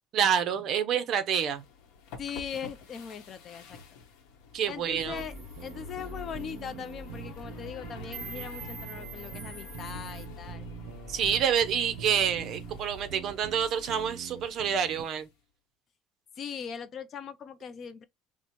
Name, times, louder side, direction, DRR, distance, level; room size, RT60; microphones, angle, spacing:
voice 1, 0.1-1.6 4.5-5.2 11.1-15.3, right 8 dB, 45° right, 0.6 m, -27 dB
sound 1, 1.4-15.3, left 3 dB, 75° left, 0.8 m, -47 dB
voice 2, 2.2-3.8 4.7-5.3 5.6-10.7 16.4-18.0, left 7 dB, 35° left, 0.3 m, -40 dB
sound 2, 5.0-15.0, right 8 dB, 85° right, 0.5 m, -44 dB
sound 3, 5.2-10.3, right 4 dB, ahead, 2.6 m, -47 dB
4.6 x 2.0 x 2.8 m
cardioid pair, 165°, 0 cm